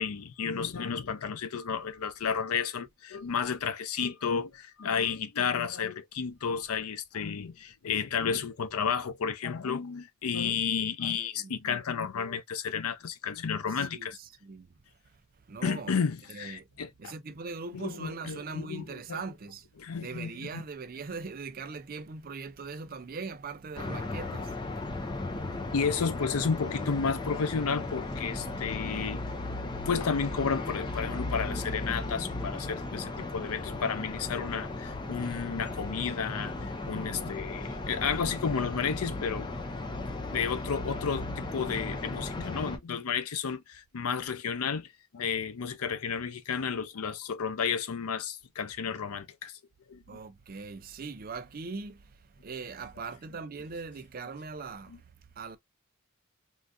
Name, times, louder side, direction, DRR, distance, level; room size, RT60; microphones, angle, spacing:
voice 1, 0.0-14.2 15.6-17.1 17.7-19.2 19.8-20.6 25.7-29.2 29.9-36.5 36.9-39.8 40.3-44.9 45.1-49.5 49.9-50.0, left 6 dB, 85° left, 0.5 m, -32 dB
voice 2, 11.2-11.5 13.7-14.8 15.5-16.0 16.3-16.7 17.0-19.7 20.0-25.2 50.1-55.0 55.4-55.6, right 4 dB, 40° right, 0.4 m, -41 dB
sound 1, 23.8-42.8, left 2 dB, 20° left, 0.5 m, -36 dB
3.7 x 2.3 x 2.6 m
head